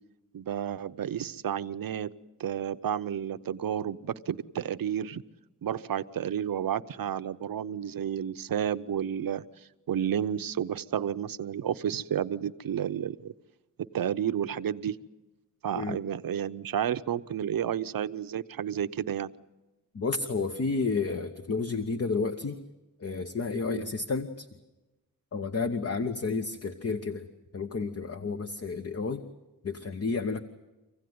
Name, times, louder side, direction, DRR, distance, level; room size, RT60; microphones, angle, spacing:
voice 1, 0.3-2.1 2.4-5.2 5.6-9.4 9.9-13.3 13.9-15.0 15.6-19.3 23.7-23.9, right 9 dB, 75° right, 12 dB, 0.8 m, -31 dB
voice 2, 19.9-22.6 23.0-24.5 25.3-27.3 27.5-29.2 29.6-30.4, left 4 dB, 45° left, 8 dB, 1.0 m, -31 dB
26.0 x 16.0 x 9.5 m, 1.1 s
wide cardioid pair, 100°, 35 cm